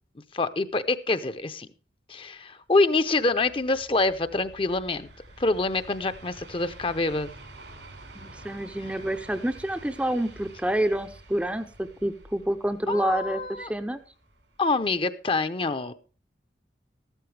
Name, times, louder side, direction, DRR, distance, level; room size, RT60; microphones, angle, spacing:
voice 1, 0.3-1.7 2.1-5.1 5.4-7.3 12.9-13.7 14.6-15.9, left 3 dB, 30° left, 11 dB, 0.7 m, -26 dB
sound 1, 3.0-14.9, right 2 dB, 90° right, 4.1 m, -49 dB
voice 2, 8.1-14.0, right 1 dB, 5° right, 8 dB, 0.6 m, -28 dB
14.5 x 12.5 x 3.3 m, 0.36 s
head